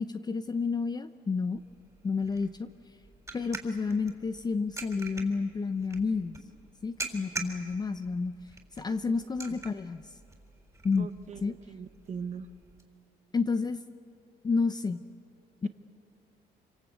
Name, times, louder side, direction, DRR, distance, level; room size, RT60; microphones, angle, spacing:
voice 1, 0.0-1.6 2.0-2.7 3.3-6.4 6.8-8.3 8.7-10.1 10.8-11.1 11.4-11.5 13.3-13.8 14.4-15.0 15.6-15.7, left 4 dB, 25° left, 9 dB, 0.7 m, -30 dB
sound 1, 1.5-12.8, right 3 dB, 20° right, 3.9 m, -45 dB
voice 2, 11.0-12.5, right 6 dB, 45° right, 10 dB, 1.1 m, -41 dB
26.0 x 25.5 x 8.5 m, 2.6 s
cardioid pair, 110°, 17 cm